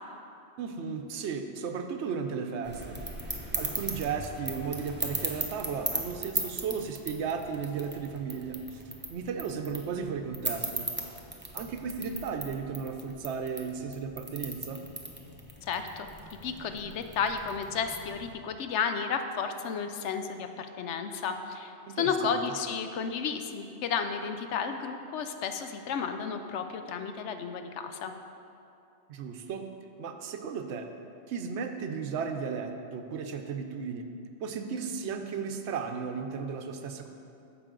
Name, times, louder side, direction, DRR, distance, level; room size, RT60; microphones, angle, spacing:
voice 1, 0.6-3.0 3.6-8.8 9.1-10.9 11.5-14.8 21.9-22.4 29.1-29.6 30.0-30.9 31.3-34.1 34.4-37.1, right 6 dB, 75° right, 6 dB, 0.9 m, -35 dB
sound 1, 2.6-18.3, right 2 dB, 10° right, 0.6 m, -38 dB
voice 2, 15.6-16.1 16.4-28.1, left 6 dB, 75° left, 7 dB, 0.9 m, -32 dB
9.9 x 7.0 x 3.7 m, 2.7 s
omnidirectional pair, 1.2 m